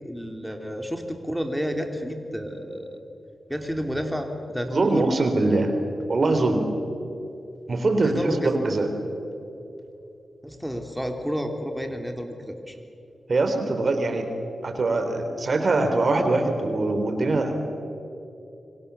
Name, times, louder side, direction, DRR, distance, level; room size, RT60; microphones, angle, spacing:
voice 1, 0.0-3.0 3.5-5.2 8.0-8.5 10.4-12.8, equal, ahead, 4 dB, 3.2 m, -30 dB
voice 2, 4.7-5.7 6.1-6.7 7.7-8.9 13.3-14.2 14.6-17.5, right 2 dB, 55° right, 6 dB, 3.6 m, -23 dB
26.0 x 25.0 x 7.0 m, 2.9 s
cardioid pair, 50°, 0 cm